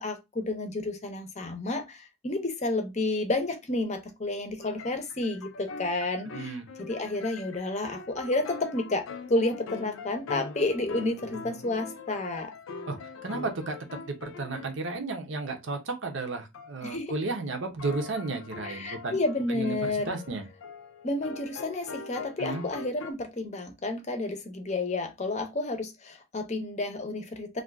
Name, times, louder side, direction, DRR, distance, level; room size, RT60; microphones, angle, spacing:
voice 1, 0.0-12.5 16.8-17.1 18.6-20.1 21.0-27.6, left 2 dB, 35° left, 0.6 m, -31 dB
sound 1, 4.6-14.8 16.5-16.7 17.8-23.1, left 5 dB, 80° left, 0.4 m, -42 dB
voice 2, 6.3-6.6 12.9-13.0 13.2-13.8 14.1-19.2 19.5-20.5 22.4-22.6, right 3 dB, 65° right, 0.7 m, -33 dB
2.5 x 2.4 x 3.4 m
head